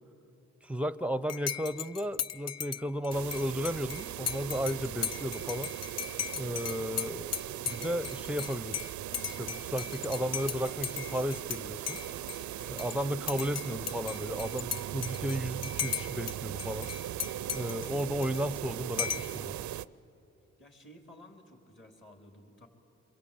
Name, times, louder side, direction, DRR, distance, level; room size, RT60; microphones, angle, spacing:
voice 1, 0.6-5.7 6.3-7.3 7.6-8.8 9.4-12.0 12.7-16.9 17.5-19.7, equal, 5° right, 17 dB, 0.7 m, -34 dB
Dishes pots and pans / Cutlery silverware / Chink clink, 1.3-11.6 11.9-13.0 13.3-16.3 16.6-18.6 19.0-19.4, left 9 dB, 60° left, 0.6 m, -37 dB
sound 1, 3.1-19.9, right 12 dB, 90° right, 0.5 m, -39 dB
voice 2, 6.5-6.9 20.6-22.7, left 1 dB, 40° left, 3 dB, 4.1 m, -54 dB
26.5 x 22.5 x 8.7 m, 2.9 s
cardioid pair, 60°, 29 cm